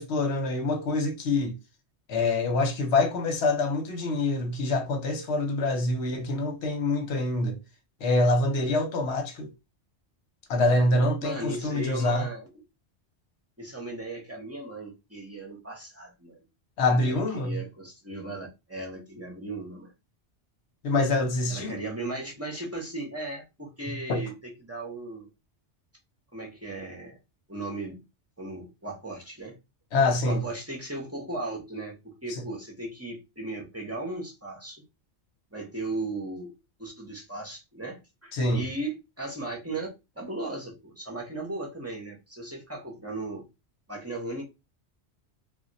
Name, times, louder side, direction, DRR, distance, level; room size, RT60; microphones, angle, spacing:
voice 1, 0.0-1.6 2.1-7.6 8.0-9.5 10.5-12.3 16.8-17.6 20.8-21.8 23.9-24.2 29.9-30.4 32.3-32.4 38.3-38.6, left 2 dB, 70° left, 1.0 m, -25 dB
voice 2, 11.2-12.5 13.6-16.4 17.1-19.9 21.5-25.3 26.3-27.2 27.5-28.0 28.4-29.5 30.2-34.8 35.5-36.5 36.8-39.9 40.2-43.5 43.9-44.4, right 2 dB, 15° right, 0.6 m, -37 dB
2.2 x 2.2 x 3.8 m
omnidirectional pair, 1.2 m